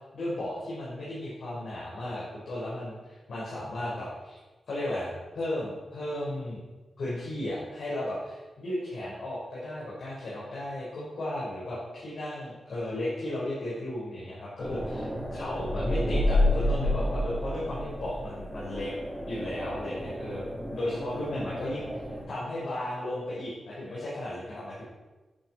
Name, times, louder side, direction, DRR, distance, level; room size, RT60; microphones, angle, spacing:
voice 1, 0.1-4.4 4.7-6.6 7.0-18.9 19.3-22.0 22.3-24.8, left 1 dB, 70° left, -7 dB, 5.9 m, -35 dB
sound 1, 14.6-22.2, left 1 dB, 20° left, 6.2 m, -30 dB
17.0 x 11.0 x 4.8 m, 1.2 s
wide cardioid pair, 135°, 0 cm